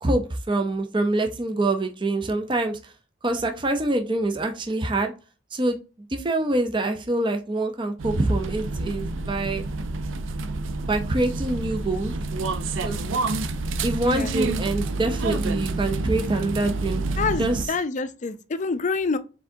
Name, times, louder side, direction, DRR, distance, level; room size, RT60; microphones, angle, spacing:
voice 1, 0.0-2.9 3.2-5.1 5.5-5.8 6.1-9.6 10.9-12.1 12.8-13.2 13.8-17.0 17.4-17.6, right 2 dB, 25° right, 0.5 m, -25 dB
sound 1, 8.0-17.7, right 3 dB, 80° right, 0.5 m, -28 dB
voice 2, 17.2-19.2, left 4 dB, 40° left, 0.4 m, -27 dB
4.6 x 3.7 x 2.6 m
head